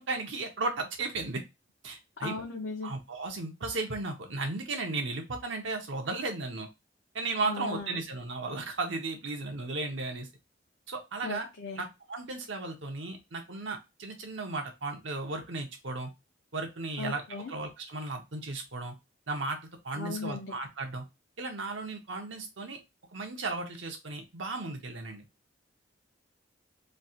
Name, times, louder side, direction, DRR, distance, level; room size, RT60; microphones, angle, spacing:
voice 1, 0.0-1.4 1.8-2.3 2.8-6.7 7.1-10.3 10.9-11.5 11.8-16.1 16.5-19.0 19.3-19.6 19.8-21.1 21.4-22.8 23.1-25.3, right 3 dB, 80° right, 3 dB, 0.9 m, -35 dB
voice 2, 2.2-3.0 7.4-8.0 11.2-11.8 17.0-17.5 19.9-20.5, left 3 dB, 75° left, -1 dB, 0.6 m, -37 dB
3.2 x 2.4 x 2.7 m, 0.23 s
head